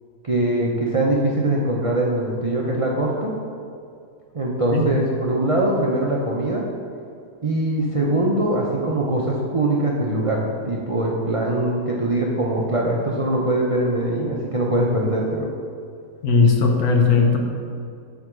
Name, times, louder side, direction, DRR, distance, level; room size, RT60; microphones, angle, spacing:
voice 1, 0.2-3.3 4.3-6.6 7.4-15.5, right 1 dB, 45° right, -3 dB, 0.4 m, -22 dB
voice 2, 16.2-17.4, left 4 dB, 70° left, 2 dB, 1.4 m, -17 dB
8.9 x 3.5 x 6.1 m, 2.4 s
omnidirectional pair, 1.7 m